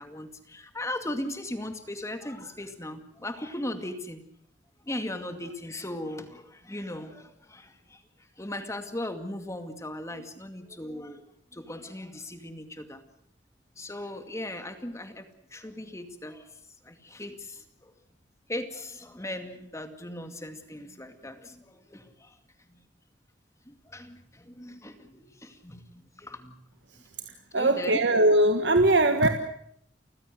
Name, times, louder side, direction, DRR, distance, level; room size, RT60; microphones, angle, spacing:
voice 1, 0.0-4.2 4.8-8.0 8.4-11.2 11.5-13.0 13.8-16.5 16.8-17.9 18.5-22.3 22.7-22.8 23.7-26.6 27.5-28.0, left 1 dB, 15° left, 7 dB, 2.3 m, -38 dB
voice 2, 27.3-29.3, right 1 dB, 75° right, 6 dB, 1.6 m, -21 dB
30.0 x 15.5 x 7.8 m, 0.70 s
head